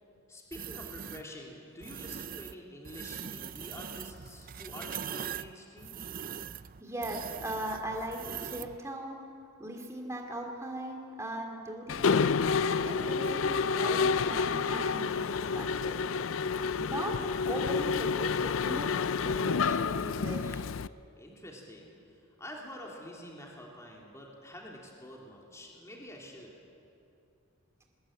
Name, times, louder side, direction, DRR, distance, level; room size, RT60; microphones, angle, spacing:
voice 1, 0.3-6.0 21.2-26.6, equal, 15° left, -1 dB, 3.0 m, -47 dB
sound 1, 0.5-1.2 1.8-2.5 2.8-8.8, right 8 dB, 45° right, 0.5 m, -41 dB
voice 2, 6.8-9.2 9.6-12.2 12.8-16.0 16.7-17.2 17.5-18.9 19.2-20.6, right 1 dB, 15° right, 1 dB, 2.6 m, -39 dB
Mechanisms, 11.9-20.9, left 5 dB, 70° left, 0.5 m, -29 dB
21.5 x 20.5 x 9.0 m, 2.6 s
head